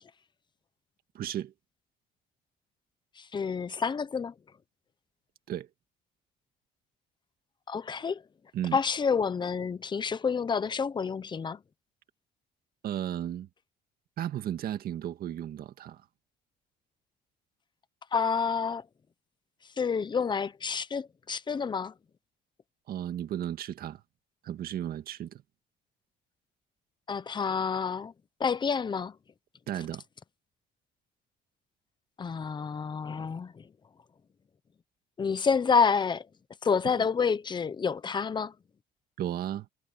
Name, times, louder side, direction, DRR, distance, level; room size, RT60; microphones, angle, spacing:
voice 1, 1.1-1.5 5.5-5.7 8.5-8.8 12.8-13.5 14.2-16.0 22.9-24.0 24.4-25.4 29.7-30.0 39.2-39.7, right 11 dB, 60° right, 1.9 m, -34 dB
voice 2, 3.2-4.3 7.7-8.2 8.7-11.6 18.1-18.8 19.8-21.9 27.1-28.1 28.4-29.1 32.2-33.7 35.2-36.3 36.6-38.5, left 6 dB, 25° left, 0.9 m, -28 dB
cardioid pair, 110°, 17 cm